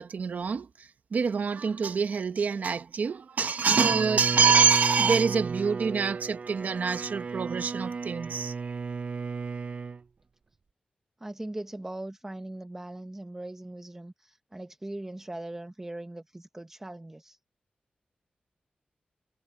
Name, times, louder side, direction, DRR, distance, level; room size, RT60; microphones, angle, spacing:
voice 1, 0.0-8.7, right 5 dB, 65° right, 0.9 m, -26 dB
Bowed string instrument, 3.7-10.0, right 5 dB, 45° right, 0.3 m, -35 dB
voice 2, 11.2-17.4, right 1 dB, 15° right, 0.7 m, -40 dB
wide cardioid pair, 120°, 3 cm